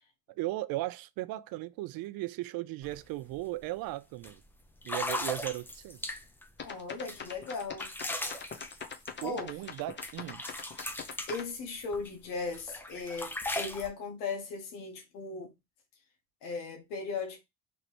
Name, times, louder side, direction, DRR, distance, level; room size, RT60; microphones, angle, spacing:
voice 1, 0.4-4.4 4.8-6.2 9.2-10.4, right 17 dB, 60° right, 0.5 m, -37 dB
sound 1, 2.8-3.0 3.3-3.6 4.2-4.3 4.8-6.5 7.1-9.8 10.0-12.1 12.5-13.9, left 1 dB, 5° left, 0.5 m, -38 dB
voice 2, 6.6-7.9 9.2-9.5 11.3-15.5 16.4-17.4, left 4 dB, 90° left, 1.2 m, -37 dB
sound 2, 6.6-11.5, left 6 dB, 25° left, 0.8 m, -42 dB
3.1 x 3.0 x 2.9 m
supercardioid pair, 90°, 42 cm